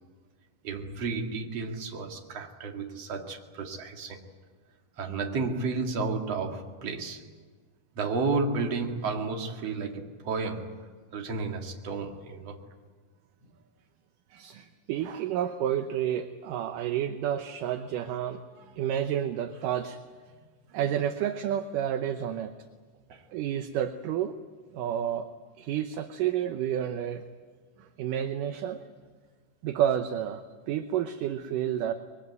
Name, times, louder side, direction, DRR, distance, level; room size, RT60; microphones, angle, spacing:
voice 1, 0.6-4.2 5.0-7.2 7.9-10.9 11.1-12.6 13.4-13.5 18.6-18.7 20.4-20.5 23.1-23.3, right 4 dB, 45° right, 2.9 m, -32 dB
voice 2, 14.3-18.4 18.8-20.0 20.7-22.5 23.3-24.3 24.7-25.3 25.6-27.2 27.8-28.8 29.6-31.9, right 10 dB, 70° right, 2.2 m, -30 dB
25.0 x 22.0 x 9.5 m
omnidirectional pair, 4.4 m